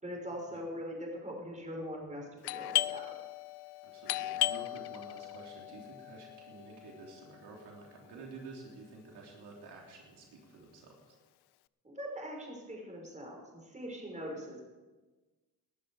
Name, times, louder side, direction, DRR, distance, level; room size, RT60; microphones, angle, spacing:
voice 1, 0.0-3.1 11.8-14.6, equal, 20° right, -1 dB, 5.8 m, -42 dB
Doorbell, 2.4-7.9, left 16 dB, 75° left, 0.5 m, -37 dB
voice 2, 3.8-11.1 14.2-14.3, right 3 dB, 85° right, -1 dB, 3.4 m, -50 dB
18.5 x 12.0 x 4.9 m, 1.2 s
cardioid pair, 85°, 39 cm